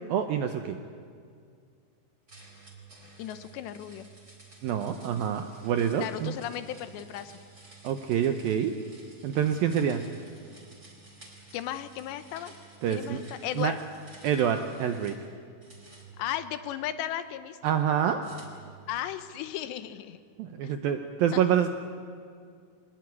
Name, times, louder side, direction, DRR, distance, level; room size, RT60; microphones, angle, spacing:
voice 1, 0.1-0.8 4.6-6.3 7.8-8.7 9.2-10.0 12.8-13.2 13.6-13.7 14.2-15.2 17.6-18.2 20.4-21.7, right 9 dB, 75° right, 7 dB, 2.2 m, -27 dB
sound 1, 2.3-15.2 15.6-17.1 18.2-19.2, right 3 dB, 15° right, 3.9 m, -52 dB
voice 2, 3.2-4.1 6.0-7.3 11.5-12.5 12.9-13.8 16.2-17.6 18.9-20.2 20.6-20.7 21.3-21.4, left 11 dB, 75° left, 12 dB, 3.0 m, -35 dB
24.5 x 20.0 x 9.7 m, 2.2 s
omnidirectional pair, 5.3 m